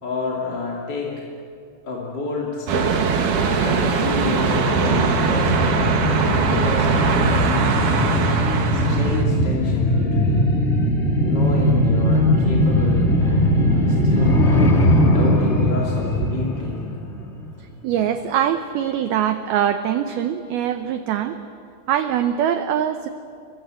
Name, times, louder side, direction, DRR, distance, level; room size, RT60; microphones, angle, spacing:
voice 1, 0.0-1.1 1.8-2.9 3.6-5.9 6.4-7.5 8.7-10.5 11.2-14.3 15.0-16.8, left 3 dB, 30° left, -3 dB, 2.5 m, -29 dB
sound 1, 2.7-9.2, right 5 dB, 55° right, 2.6 m, -21 dB
sound 2, 4.2-17.5 17.8-17.9, equal, 45° left, 0.8 m, -19 dB
voice 2, 17.6-21.4 21.9-23.1, right 10 dB, 80° right, 9 dB, 2.2 m, -23 dB
29.0 x 24.0 x 7.7 m, 2.6 s
omnidirectional pair, 5.5 m